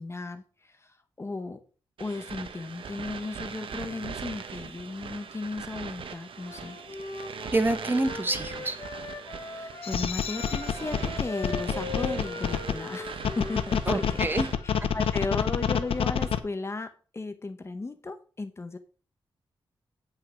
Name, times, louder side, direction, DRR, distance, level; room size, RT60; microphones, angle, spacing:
voice 1, 0.0-1.6 2.0-6.8 9.4-18.8, left 3 dB, 30° left, 9 dB, 0.9 m, -35 dB
sound 1, 2.0-14.6, right 6 dB, 70° right, 1.0 m, -40 dB
Wind instrument woodwind instrument, 6.4-14.4, left 4 dB, 45° left, 2.6 m, -40 dB
voice 2, 7.5-8.8 13.9-14.5, right 2 dB, 20° right, 9 dB, 1.0 m, -27 dB
sound 2, 9.8-12.7 13.2-16.4, left 8 dB, 90° left, 0.6 m, -27 dB
8.9 x 5.8 x 5.1 m, 0.38 s
wide cardioid pair, 110°, 9 cm